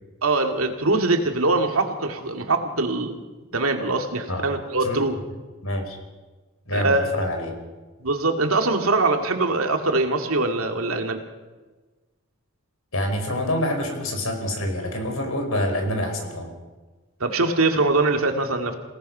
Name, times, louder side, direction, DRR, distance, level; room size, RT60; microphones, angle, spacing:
voice 1, 0.2-3.2 3.5-5.1 6.7-7.2 8.0-11.2 17.2-18.8, right 2 dB, 80° right, 4 dB, 2.2 m, -22 dB
voice 2, 5.6-6.0 6.7-7.5 12.9-16.5, left 1 dB, 80° left, 4 dB, 4.9 m, -26 dB
27.5 x 18.0 x 5.6 m, 1.3 s
head